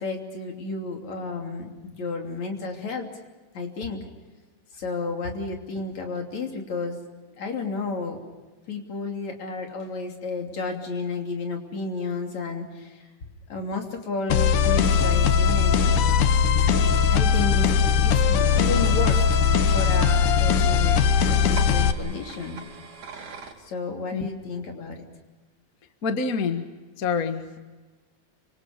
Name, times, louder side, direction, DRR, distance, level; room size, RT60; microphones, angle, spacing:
voice 1, 0.0-3.1 3.5-4.1 4.7-7.0 7.4-8.2 8.7-13.0 13.5-16.0 17.1-17.7 18.0-19.3 19.6-21.0 21.2-22.6 23.7-25.0, left 3 dB, 65° left, 2 dB, 4.4 m, -32 dB
sound 1, 14.3-21.9, left 6 dB, 85° left, 2.6 m, -20 dB
sound 2, 16.3-23.5, right 4 dB, 75° right, 4.5 m, -44 dB
voice 2, 26.0-26.7 27.0-27.6, left 5 dB, 40° left, 7 dB, 1.5 m, -26 dB
28.5 x 26.0 x 5.2 m, 1.2 s
omnidirectional pair, 3.5 m